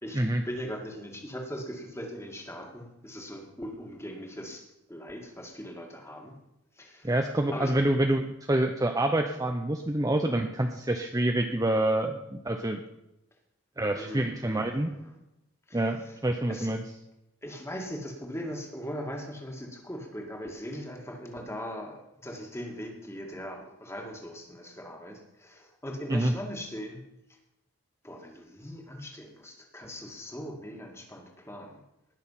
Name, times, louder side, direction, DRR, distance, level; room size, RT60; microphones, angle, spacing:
voice 1, 0.0-6.4 6.8-7.1 7.5-7.7 13.9-15.1 15.7-16.2 16.5-16.7 17.4-27.0 28.0-31.8, equal, 10° left, 2 dB, 1.9 m, -40 dB
voice 2, 7.0-12.8 13.8-14.9 15.7-16.8 26.1-26.3, right 1 dB, 15° right, 4 dB, 0.6 m, -27 dB
19.5 x 6.5 x 5.7 m, 0.87 s
head